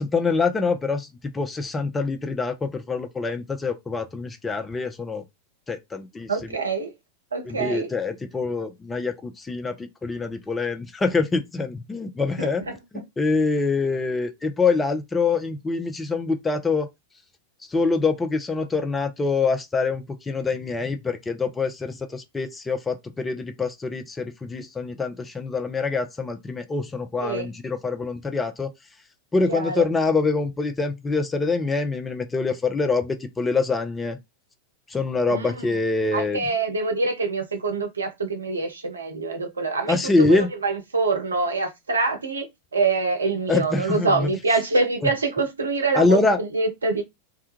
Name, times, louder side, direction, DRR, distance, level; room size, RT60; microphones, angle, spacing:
voice 1, 0.1-5.2 5.7-6.3 7.5-12.6 13.2-16.9 17.7-28.7 29.3-34.2 34.9-36.4 39.9-40.5 43.5-44.3 45.9-46.4, left 3 dB, 15° left, 0.4 m, -25 dB
voice 2, 6.3-6.9 7.3-7.9 12.4-13.0 27.2-27.5 29.5-29.8 35.3-35.7 36.1-42.5 42.7-47.0, right 3 dB, 75° right, 0.6 m, -25 dB
2.3 x 2.2 x 2.9 m
figure-of-eight pair, 90°, 0 cm